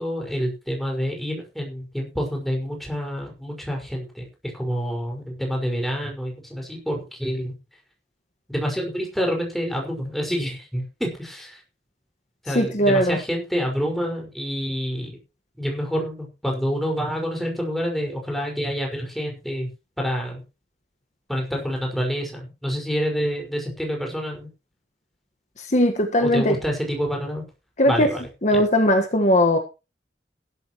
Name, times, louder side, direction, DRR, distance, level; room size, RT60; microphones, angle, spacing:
voice 1, 0.0-4.2 4.5-7.5 8.5-11.6 12.4-15.2 15.6-19.7 20.0-20.4 21.3-24.5 26.2-27.4 27.8-28.2 28.5-28.6, equal, ahead, 0 dB, 5.5 m, -27 dB
voice 2, 12.5-13.2 25.6-26.6 27.8-28.1 28.4-29.6, equal, 40° left, 5 dB, 1.6 m, -19 dB
16.5 x 13.0 x 3.1 m, 0.30 s
head